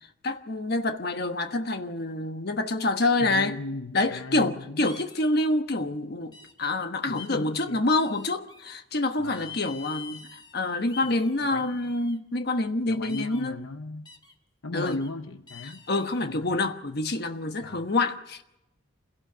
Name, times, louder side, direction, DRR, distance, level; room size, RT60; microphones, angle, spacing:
voice 1, 0.2-3.6 3.9-13.6 14.7-15.0 15.6-18.4, left 2 dB, 50° left, 1.2 m, -27 dB
voice 2, 3.2-4.9 7.1-7.9 9.2-9.5 11.0-11.1 11.5-11.7 12.9-14.1 14.6-15.8 16.2-16.5 17.6-17.9, left 2 dB, 70° left, 0.8 m, -37 dB
sound 1, 4.8-5.3 6.3-6.7 7.2-7.4 8.0-8.7 9.3-10.5 10.8-12.2 13.1-13.5 14.1-14.3 14.9-15.1 15.5-16.3, left 6 dB, 20° left, 1.7 m, -45 dB
26.5 x 16.5 x 6.8 m
head